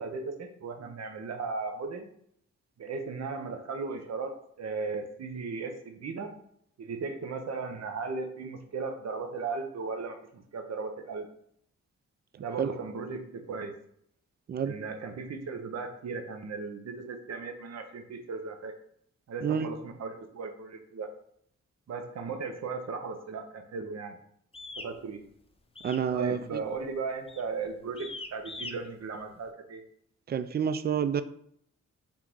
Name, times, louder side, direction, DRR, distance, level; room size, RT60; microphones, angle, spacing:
voice 1, 0.0-2.1 2.8-6.3 6.8-11.3 12.4-13.7 14.6-18.7 19.3-21.1 21.9-24.2 24.8-25.2 26.1-29.8, right 4 dB, 60° right, 6 dB, 0.8 m, -36 dB
sound 1, 24.5-24.9 25.8-26.1 26.4-26.7 27.3-27.5 28.0-28.7, left 3 dB, 20° left, 0.6 m, -41 dB
voice 2, 25.8-26.6 30.3-31.2, right 7 dB, 35° right, 13 dB, 0.4 m, -28 dB
3.6 x 2.6 x 4.5 m, 0.69 s
cardioid pair, 60°, 30 cm